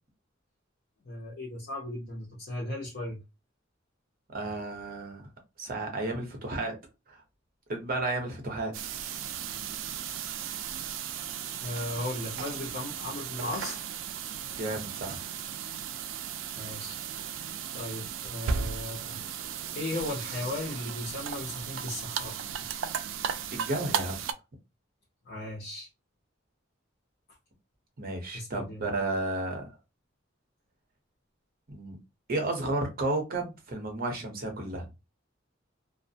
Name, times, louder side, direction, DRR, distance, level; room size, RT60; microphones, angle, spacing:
voice 1, 1.0-3.2 11.6-13.8 16.5-19.2 19.7-22.4 25.2-25.9 28.3-28.9, left 1 dB, 55° left, 0.7 m, -37 dB
voice 2, 4.3-5.2 5.6-6.8 7.1-7.2 7.7-8.7 14.6-15.2 23.5-24.2 28.0-29.6 31.7-32.0 32.3-34.9, right 2 dB, 50° right, 0.8 m, -32 dB
sound 1, 8.7-24.3, right 7 dB, 75° right, 0.3 m, -36 dB
2.4 x 2.1 x 2.6 m
head